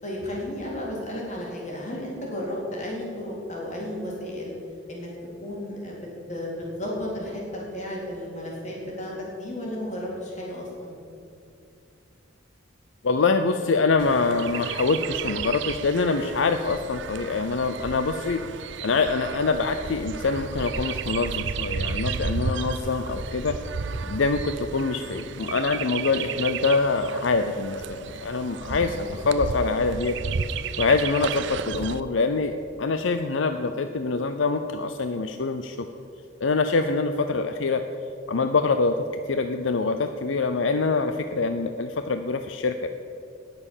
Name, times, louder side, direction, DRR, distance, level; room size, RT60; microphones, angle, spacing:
voice 1, 0.0-4.5 4.9-5.1 5.4-11.0 28.7-29.2, left 1 dB, 40° left, -4 dB, 3.9 m, -33 dB
voice 2, 13.0-18.4 18.8-23.6 24.1-30.2 30.8-32.5 32.8-35.9 36.4-37.8 38.3-38.9 39.3-42.9, left 4 dB, 75° left, 8 dB, 0.6 m, -25 dB
Chirp tweet, 14.0-32.0, right 5 dB, 65° right, 0.5 m, -33 dB
18.5 x 6.8 x 7.2 m, 2.7 s
head